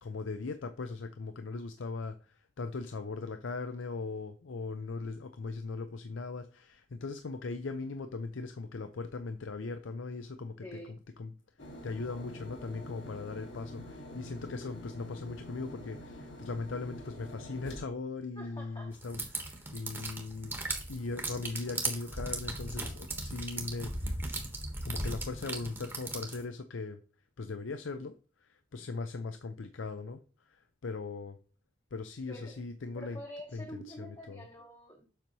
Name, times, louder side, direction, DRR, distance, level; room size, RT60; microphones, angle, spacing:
voice 1, 0.0-10.8 11.2-11.3 11.8-20.6 20.9-24.4 24.8-27.0 27.4-31.4 31.9-33.2 33.5-34.4, left 3 dB, 85° left, 0.5 m, -39 dB
voice 2, 10.6-10.9 18.4-19.0 32.3-32.6 32.9-35.1, equal, 20° left, 0.9 m, -46 dB
sound 1, 11.6-17.8, left 1 dB, 70° left, 1.8 m, -46 dB
sound 2, 19.0-26.4, right 2 dB, 10° right, 1.1 m, -37 dB
7.3 x 5.3 x 3.0 m
head